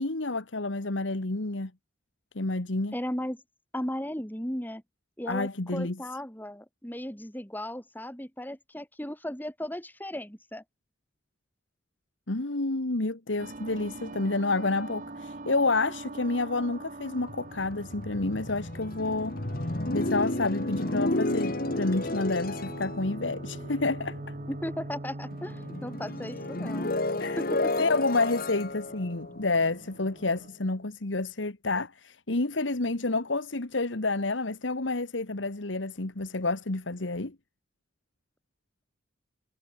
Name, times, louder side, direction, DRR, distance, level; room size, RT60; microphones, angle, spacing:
voice 1, 0.0-1.7 2.3-2.9 5.3-6.0 12.3-19.4 19.9-24.2 27.2-27.4 27.8-37.3, left 3 dB, 80° left, 1.7 m, -29 dB
voice 2, 2.9-3.4 3.7-4.8 5.2-10.6 24.5-26.9 27.4-27.7, left 1 dB, 10° left, 4.3 m, -36 dB
sound 1, 13.4-30.5, right 2 dB, 45° right, 1.6 m, -44 dB
sound 2, 17.2-24.9 25.2-30.4, left 2 dB, 50° left, 2.1 m, -32 dB
head